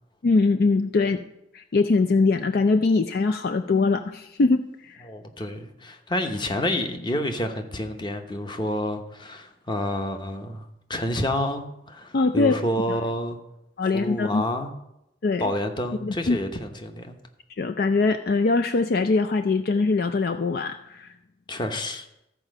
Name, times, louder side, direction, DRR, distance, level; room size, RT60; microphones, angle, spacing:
voice 1, 0.2-1.2 1.5-5.0 12.1-12.6 12.9-13.0 13.8-14.4 15.2-15.4 16.0-16.4 17.6-21.1, left 3 dB, 55° left, 9 dB, 0.4 m, -22 dB
voice 2, 5.0-13.4 13.8-14.7 15.4-17.2 21.5-22.1, left 1 dB, 25° left, 6 dB, 0.9 m, -29 dB
14.0 x 4.9 x 6.4 m, 0.86 s
head